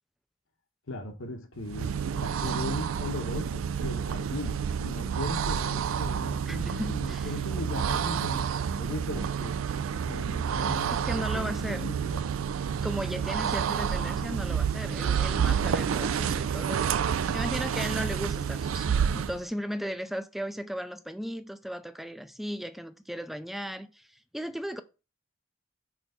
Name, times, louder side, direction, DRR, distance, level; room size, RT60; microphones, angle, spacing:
voice 1, 0.9-9.6 10.0-12.2, left 2 dB, 80° left, 1.2 m, -38 dB
sound 1, 1.6-19.4, right 7 dB, 85° right, 0.4 m, -29 dB
voice 2, 6.5-7.3 11.0-11.8 12.8-24.8, equal, ahead, 0.4 m, -36 dB
6.3 x 3.4 x 5.6 m
head